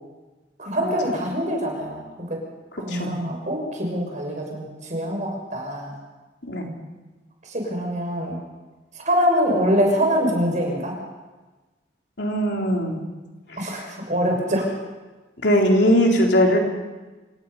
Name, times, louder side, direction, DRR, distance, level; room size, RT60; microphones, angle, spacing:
voice 1, 0.6-2.4 2.8-5.9 7.4-8.4 8.9-10.9 13.6-14.7, equal, 45° right, 1 dB, 6.4 m, -24 dB
voice 2, 12.2-13.0 13.5-13.6 15.4-16.6, equal, 70° left, 0 dB, 3.8 m, -19 dB
27.5 x 17.0 x 5.7 m, 1.2 s
head